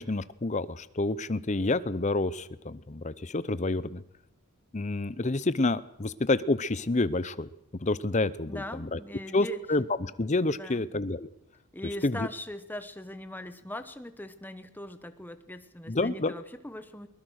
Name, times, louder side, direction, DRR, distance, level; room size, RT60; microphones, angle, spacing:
voice 1, 0.0-4.0 4.7-7.5 7.8-9.0 9.3-11.3 12.0-12.3 15.9-16.3, left 2 dB, 30° left, 16 dB, 0.7 m, -28 dB
voice 2, 8.4-9.6 10.5-10.9 11.7-17.1, left 1 dB, 10° left, 10 dB, 1.1 m, -41 dB
22.0 x 20.0 x 6.5 m, 0.81 s
head